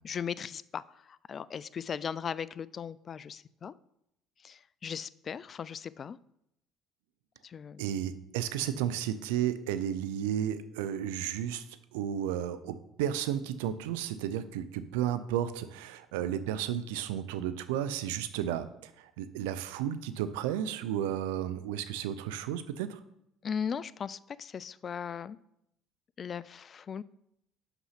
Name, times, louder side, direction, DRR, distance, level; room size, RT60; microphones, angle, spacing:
voice 1, 0.0-3.7 4.4-6.2 7.4-7.8 23.4-25.4 26.2-27.0, left 7 dB, 40° left, 19 dB, 0.3 m, -38 dB
voice 2, 7.8-11.7 11.9-23.0, right 10 dB, 85° right, 13 dB, 0.5 m, -33 dB
5.9 x 5.5 x 5.7 m, 0.78 s
supercardioid pair, 75°, 0 cm